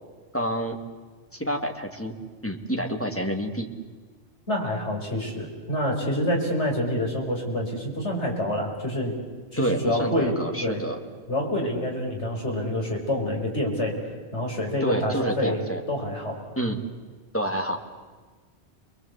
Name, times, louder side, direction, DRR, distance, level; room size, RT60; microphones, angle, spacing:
voice 1, 0.3-0.8 1.3-2.2 2.4-3.7 9.6-11.0 14.8-15.8 16.6-16.8 17.3-17.8, right 1 dB, 10° left, 3 dB, 2.2 m, -28 dB
voice 2, 4.5-9.1 9.5-10.4 10.6-10.8 11.3-14.0 14.3-16.4, left 1 dB, 75° left, 0 dB, 5.2 m, -27 dB
29.0 x 22.0 x 8.2 m, 1.4 s
omnidirectional pair, 1.2 m